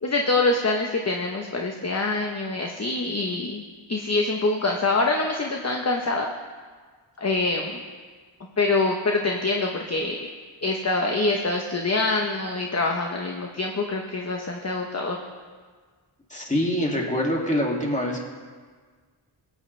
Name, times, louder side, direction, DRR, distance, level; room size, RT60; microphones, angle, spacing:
voice 1, 0.0-3.6 3.9-6.3 7.2-7.8 8.6-10.2 10.6-15.2, left 3 dB, 35° left, 2 dB, 0.9 m, -25 dB
voice 2, 16.3-18.2, equal, 15° left, -2 dB, 2.3 m, -25 dB
20.5 x 9.3 x 3.3 m, 1.5 s
wide cardioid pair, 75°, 48 cm